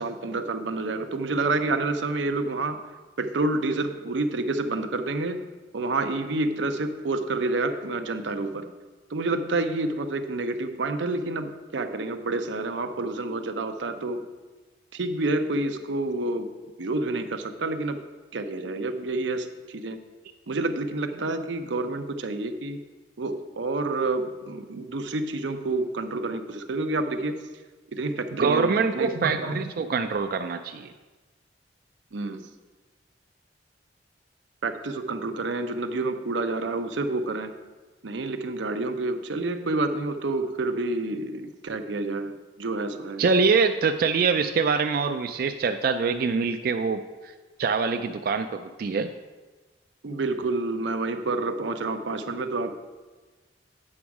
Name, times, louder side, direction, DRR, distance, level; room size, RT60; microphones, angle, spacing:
voice 1, 0.0-2.8 3.2-5.4 5.7-8.7 9.1-14.3 14.9-18.0 18.3-20.0 20.5-22.8 23.2-27.5 27.9-29.7 32.1-32.5 34.6-37.5 38.0-43.2 50.0-52.7, right 2 dB, 85° right, 7 dB, 0.7 m, -28 dB
voice 2, 28.3-30.9 43.2-47.0 47.6-49.1, right 5 dB, 55° right, 7 dB, 0.3 m, -24 dB
8.6 x 6.1 x 4.7 m, 1.3 s
head